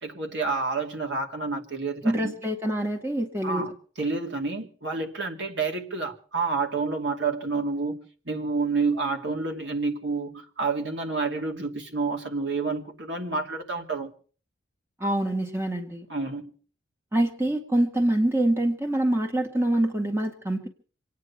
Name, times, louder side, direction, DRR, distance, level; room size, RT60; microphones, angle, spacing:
voice 1, 0.0-2.3 3.4-3.7 4.0-8.0 8.3-14.1 16.1-16.5, right 4 dB, 60° right, 2.6 m, -29 dB
voice 2, 2.0-3.6 15.0-16.1 17.1-20.7, right 1 dB, 10° right, 1.9 m, -25 dB
26.0 x 9.6 x 5.8 m
head